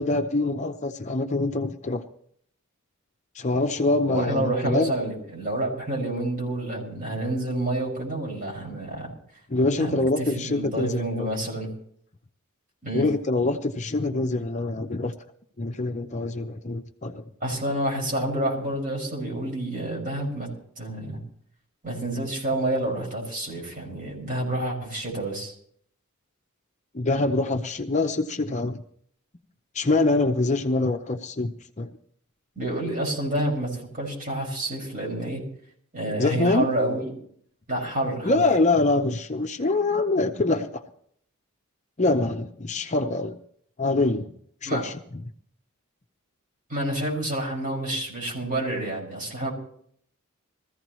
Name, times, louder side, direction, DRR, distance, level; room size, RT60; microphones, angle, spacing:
voice 1, 0.0-2.0 3.3-4.9 9.5-11.3 12.9-15.1 15.6-17.2 26.9-28.8 29.7-31.9 36.2-36.7 38.2-40.8 42.0-43.4 43.8-44.3 44.6-45.2, left 2 dB, 35° left, 6 dB, 0.7 m, -25 dB
voice 2, 4.1-9.1 9.8-11.7 12.8-13.0 17.4-20.5 20.8-21.2 21.8-25.5 32.6-35.4 35.9-37.1 37.7-38.4 44.7-44.9 46.7-49.5, right 1 dB, 40° right, -1 dB, 5.8 m, -28 dB
21.5 x 15.0 x 3.1 m, 0.64 s
head